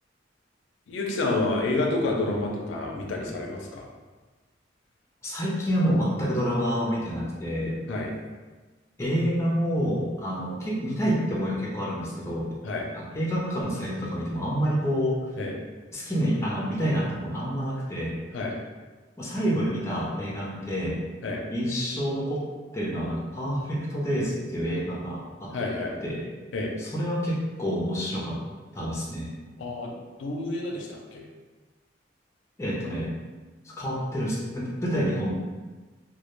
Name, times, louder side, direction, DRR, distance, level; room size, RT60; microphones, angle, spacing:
voice 1, 0.9-3.8 7.9-8.1 12.6-12.9 15.4-15.5 18.3-18.5 21.2-21.4 25.5-25.9 26.5-26.7 29.6-31.2, left 2 dB, 85° left, 0 dB, 0.4 m, -29 dB
voice 2, 5.2-7.8 9.0-12.5 12.9-15.2 15.9-18.2 19.2-21.0 21.5-22.5 22.7-25.5 26.0-26.3 26.8-28.4 28.7-29.3 32.6-33.1 33.6-35.3, equal, 15° left, -5 dB, 0.4 m, -28 dB
2.1 x 2.1 x 2.9 m, 1.3 s
head